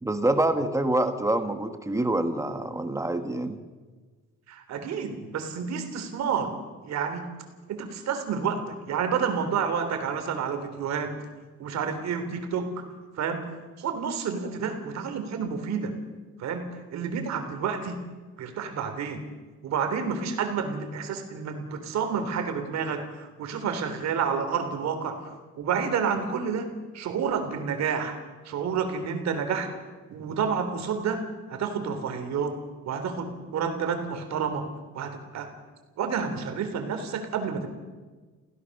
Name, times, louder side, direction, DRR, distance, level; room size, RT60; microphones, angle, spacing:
voice 1, 0.0-3.6, right 1 dB, 10° right, 8 dB, 1.3 m, -26 dB
voice 2, 4.5-6.5 6.8-7.3 7.7-11.1 11.6-12.8 13.2-13.4 13.8-16.0 16.4-18.0 18.4-19.2 19.6-25.2 25.6-26.7 26.9-28.2 28.5-29.7 30.1-31.2 31.5-32.6 32.9-34.7 34.9-35.5 36.0-37.7, right 6 dB, 60° right, 7 dB, 3.4 m, -29 dB
27.0 x 16.5 x 6.6 m, 1.3 s
cardioid pair, 145°, 30 cm